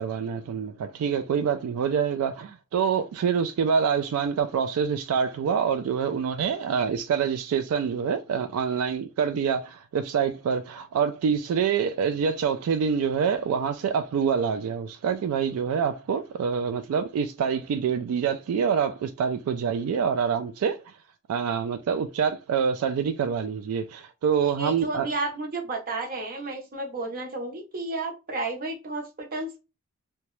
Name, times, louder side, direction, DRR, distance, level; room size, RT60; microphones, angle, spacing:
voice 1, 0.0-21.0 21.3-25.1, right 7 dB, 80° right, 0.3 m, -26 dB
voice 2, 24.5-29.6, right 2 dB, 40° right, 0.7 m, -32 dB
2.8 x 2.2 x 3.0 m
head